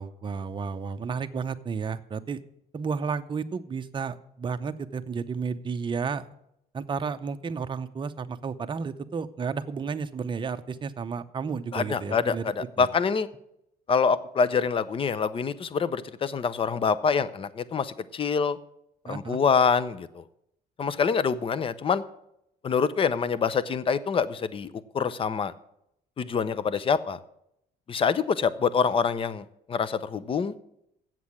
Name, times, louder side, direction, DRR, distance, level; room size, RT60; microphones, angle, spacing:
voice 1, 0.0-2.4 2.7-6.3 6.7-12.4 12.8-12.9 19.0-19.4, right 5 dB, 30° right, 9 dB, 0.7 m, -32 dB
voice 2, 11.7-13.3 13.9-18.6 19.1-20.2 20.8-22.0 22.6-24.7 24.9-25.5 26.2-27.2 27.9-30.5, left 6 dB, 30° left, 16 dB, 0.6 m, -26 dB
7.9 x 7.5 x 8.5 m, 0.77 s
cardioid pair, 110°, 17 cm